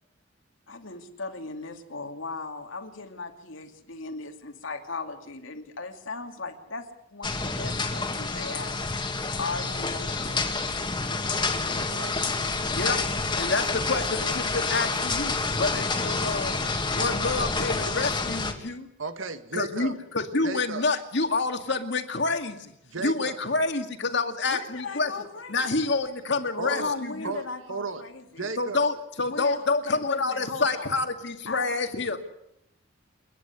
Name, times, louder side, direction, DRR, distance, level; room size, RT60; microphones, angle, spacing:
voice 1, 0.7-10.5 24.5-25.9 26.6-28.5 29.2-31.0 31.5-32.2, left 3 dB, 85° left, 5 dB, 2.6 m, -37 dB
sound 1, 7.2-18.5, left 3 dB, 25° left, 2.1 m, -28 dB
voice 2, 11.3-13.0 19.0-19.9 20.4-20.9 22.9-23.4 26.6-27.0 27.2-28.0 28.4-28.9, right 4 dB, 85° right, 9 dB, 1.9 m, -36 dB
voice 3, 13.4-16.6 16.9-18.9 19.5-22.7 23.0-25.1 25.5-27.3 28.6-32.2, left 3 dB, 60° left, 6 dB, 2.2 m, -28 dB
29.0 x 10.5 x 9.9 m, 0.80 s
head